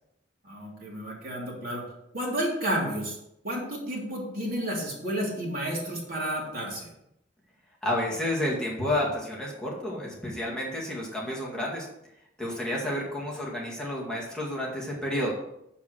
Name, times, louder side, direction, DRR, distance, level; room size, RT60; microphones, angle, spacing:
voice 1, 0.4-1.8 2.1-3.1 3.4-6.9, right 1 dB, 55° right, -3 dB, 3.2 m, -31 dB
voice 2, 7.8-11.9 12.4-15.3, left 1 dB, 5° left, -4 dB, 2.1 m, -30 dB
7.3 x 7.2 x 6.3 m, 0.80 s
head